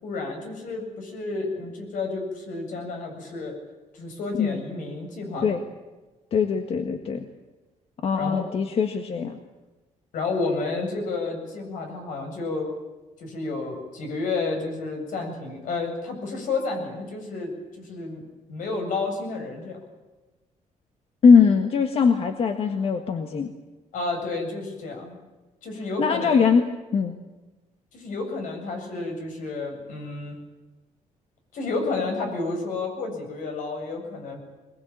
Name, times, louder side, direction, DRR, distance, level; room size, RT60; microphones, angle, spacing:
voice 1, 0.0-3.5 3.9-5.6 8.1-8.4 10.1-12.7 13.2-18.2 18.5-19.8 23.9-25.2 25.6-26.4 27.9-30.4 31.5-34.4, left 3 dB, 80° left, 3 dB, 8.0 m, -31 dB
voice 2, 6.3-7.2 8.0-9.4 21.2-23.5 26.0-26.6 26.9-27.2, left 5 dB, 45° left, 6 dB, 1.6 m, -21 dB
22.5 x 21.0 x 8.9 m, 1.2 s
cardioid pair, 175°, 13 cm